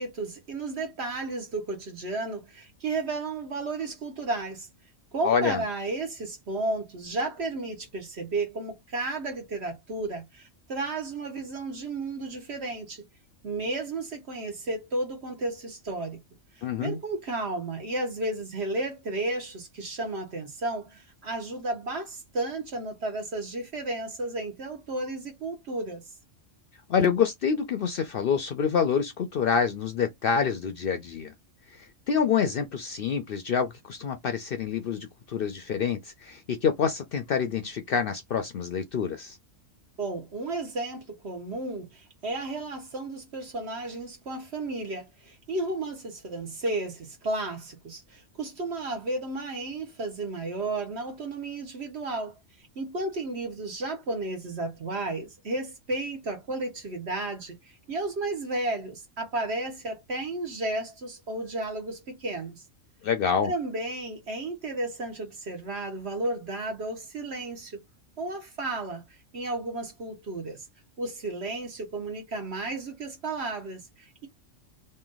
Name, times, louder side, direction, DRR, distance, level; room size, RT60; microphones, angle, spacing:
voice 1, 0.0-4.7 5.1-13.0 13.4-16.2 16.8-26.0 40.0-52.3 52.7-57.5 57.9-62.6 63.4-67.8 68.2-69.0 69.3-70.6 71.0-74.3, right 2 dB, 55° right, 1.4 m, -33 dB
voice 2, 5.2-5.6 16.6-17.0 26.9-31.3 32.1-39.4 63.0-63.5, left 6 dB, 60° left, 0.6 m, -27 dB
3.2 x 2.6 x 3.8 m
omnidirectional pair, 1.3 m